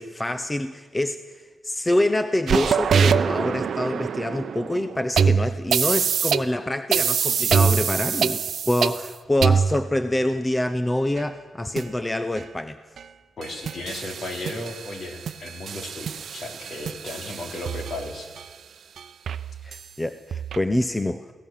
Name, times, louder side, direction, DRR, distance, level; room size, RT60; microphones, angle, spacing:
voice 1, 0.0-8.4 8.7-12.8 19.6-21.3, left 1 dB, 15° left, 11 dB, 0.6 m, -26 dB
sound 1, 2.5-6.4 6.9-9.1 9.4-10.0 11.2-11.3 11.8-11.9 12.4-12.5 13.0-13.1 13.4-14.9 15.3-18.4 19.0-19.1 19.3-19.8 20.3-20.6, right 6 dB, 65° right, 0.7 m, -24 dB
voice 2, 13.4-18.3, left 2 dB, 50° left, 4 dB, 3.2 m, -35 dB
22.5 x 17.0 x 7.3 m, 1.4 s
wide cardioid pair, 145°, 0 cm